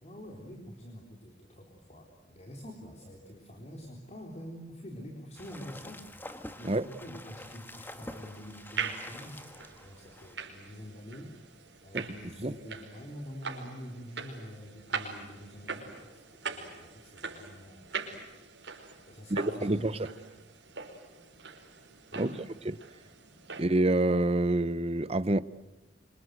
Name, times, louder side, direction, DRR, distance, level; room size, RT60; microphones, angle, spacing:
voice 1, 0.0-6.1 6.6-9.4 9.8-11.3 11.8-18.3 19.0-20.2 22.1-22.4 23.5-23.6, equal, 35° left, 3.9 m, -46 dB
sound 1, 5.4-10.4, left 1 dB, 10° left, 1.7 m, -47 dB
sound 2, 7.6-23.6, right 5 dB, 80° right, 5.3 m, -42 dB
voice 2, 19.3-20.1 22.1-22.3 23.6-25.4, right 2 dB, 35° right, 0.9 m, -27 dB
27.0 x 26.5 x 8.0 m
head